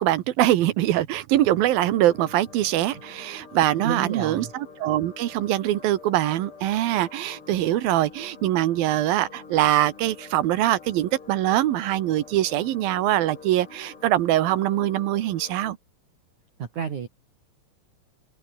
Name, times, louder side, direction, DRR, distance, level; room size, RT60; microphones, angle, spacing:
voice 1, 0.0-15.8, right 13 dB, 70° right, 2.8 m, -23 dB
sound 1, 1.4-15.8, left 5 dB, 75° left, 8.9 m, -47 dB
voice 2, 3.8-4.5 16.6-17.1, right 7 dB, 50° right, 3.8 m, -30 dB
omnidirectional pair, 4.8 m